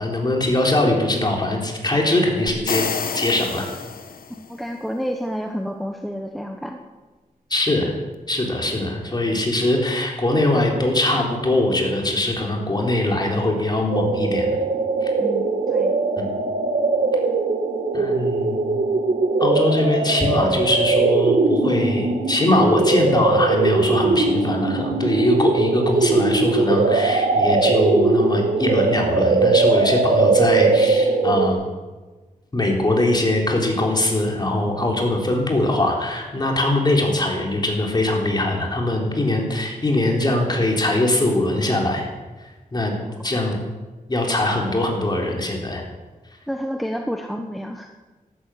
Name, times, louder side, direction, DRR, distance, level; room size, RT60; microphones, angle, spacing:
voice 1, 0.0-2.8 3.1-3.7 7.5-8.0 8.3-14.6 15.0-15.1 16.2-16.3 17.9-18.6 19.4-31.7 32.5-42.1 42.4-42.9 43.2-43.6 44.1-45.8, left 1 dB, 30° left, 0 dB, 3.8 m, -21 dB
sound 1, 2.5-4.5, left 6 dB, 85° left, 1.1 m, -28 dB
voice 2, 4.4-6.8 15.2-16.0 43.0-43.4 46.5-47.9, equal, ahead, 3 dB, 1.0 m, -30 dB
sound 2, 13.9-31.5, right 3 dB, 80° right, 1.7 m, -20 dB
13.0 x 12.5 x 8.5 m, 1.3 s
wide cardioid pair, 110°, 15 cm